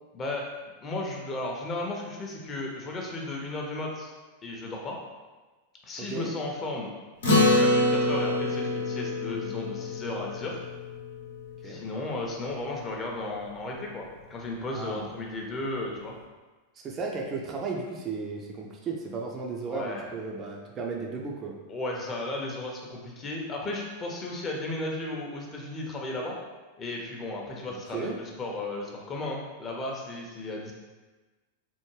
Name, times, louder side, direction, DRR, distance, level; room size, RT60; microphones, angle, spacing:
voice 1, 0.1-0.5 0.8-4.1 4.4-5.0 5.9-6.9 7.5-10.6 11.6-16.2 19.7-20.1 21.7-26.4 26.8-30.7, left 2 dB, 25° left, -1 dB, 0.6 m, -34 dB
voice 2, 6.0-6.3 11.6-11.8 14.7-15.1 16.8-21.6 27.9-28.2, right 4 dB, 30° right, 0 dB, 0.4 m, -34 dB
Acoustic guitar, 7.2-11.9, left 1 dB, 70° left, 0.7 m, -26 dB
3.4 x 2.1 x 3.1 m, 1.2 s
figure-of-eight pair, 90°, 0 cm